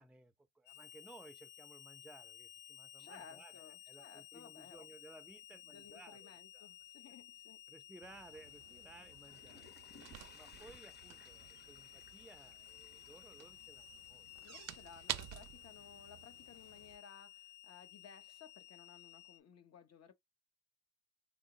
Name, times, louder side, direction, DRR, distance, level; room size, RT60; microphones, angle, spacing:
voice 1, 0.0-6.7 7.0-7.1 7.7-9.7 10.3-14.3, right 2 dB, 5° right, 0.4 m, -59 dB
Harmonica, 0.6-19.4, left 13 dB, 85° left, 0.7 m, -56 dB
voice 2, 3.0-4.9 5.6-7.6 14.4-20.1, left 7 dB, 55° left, 0.9 m, -58 dB
sound 1, 8.0-17.0, right 13 dB, 60° right, 0.5 m, -50 dB
Water / Toilet flush, 9.0-14.3 14.7-14.8, left 4 dB, 35° left, 1.0 m, -63 dB
3.6 x 2.0 x 3.8 m
cardioid pair, 90°, 30 cm